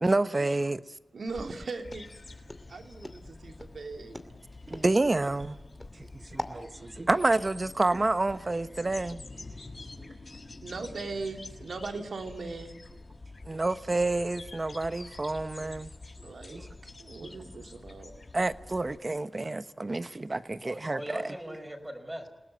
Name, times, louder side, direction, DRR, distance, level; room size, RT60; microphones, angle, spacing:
voice 1, 0.0-0.8 4.7-5.6 6.0-9.2 13.5-15.9 16.5-16.6 18.3-21.3, right 2 dB, 35° right, 1.1 m, -28 dB
voice 2, 1.1-2.1 2.7-4.2 10.6-12.7 16.2-16.7 17.0-18.1, right 3 dB, 85° right, 3.2 m, -39 dB
Walk footsteps, 1.3-6.6, left 1 dB, 15° left, 2.5 m, -43 dB
sound 1, 1.8-19.0, left 3 dB, 40° left, 6.4 m, -47 dB
voice 3, 9.5-10.1 19.2-19.7 20.6-22.3, equal, 15° right, 5.3 m, -42 dB
29.0 x 18.5 x 9.4 m
wide cardioid pair, 85°, 0 cm